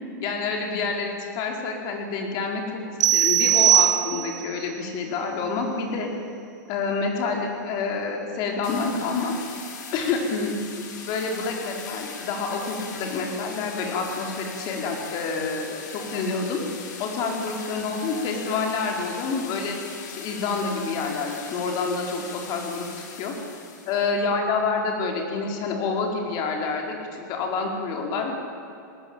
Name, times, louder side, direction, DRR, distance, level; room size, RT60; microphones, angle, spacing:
voice 1, 0.0-2.8 3.1-6.1 6.7-9.3 9.9-10.5 11.0-16.6 17.0-19.8 20.2-22.9 23.2-23.3 23.9-28.3, left 4 dB, 40° left, 2 dB, 4.7 m, -28 dB
sound 1, 3.0-4.5, right 12 dB, 75° right, 0.7 m, -19 dB
sound 2, 8.6-24.1, left 5 dB, 70° left, 5.0 m, -40 dB
20.5 x 19.0 x 8.9 m, 2.7 s
hypercardioid pair, 130°, 10 cm